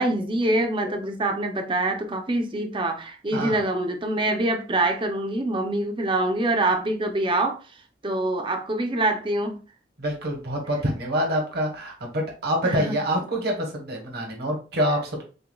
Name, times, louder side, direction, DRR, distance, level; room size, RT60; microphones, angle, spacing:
voice 1, 0.0-7.6 8.0-9.6 12.6-12.9, right 2 dB, 30° right, 4 dB, 0.6 m, -25 dB
voice 2, 10.0-15.2, equal, 60° right, 1 dB, 1.2 m, -26 dB
6.7 x 2.3 x 2.3 m, 0.36 s
head